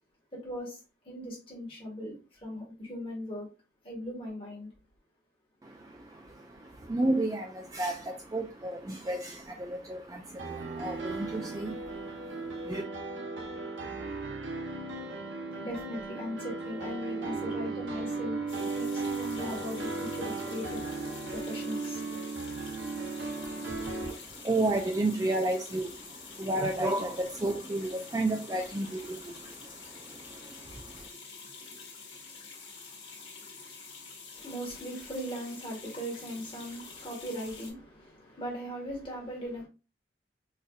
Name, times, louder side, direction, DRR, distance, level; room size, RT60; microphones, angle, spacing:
voice 1, 0.3-0.8 1.0-3.5 3.8-4.7 15.5-20.8 21.3-22.0 34.3-39.7, equal, 30° left, 1.4 m, -39 dB
voice 2, 5.6-12.8 23.4-31.1, right 2 dB, 20° right, 0.3 m, -33 dB
sound 1, 10.4-24.1, right 3 dB, 85° right, 0.7 m, -36 dB
sound 2, 18.5-37.7, left 4 dB, 80° left, 1.2 m, -47 dB
4.0 x 2.6 x 2.3 m
head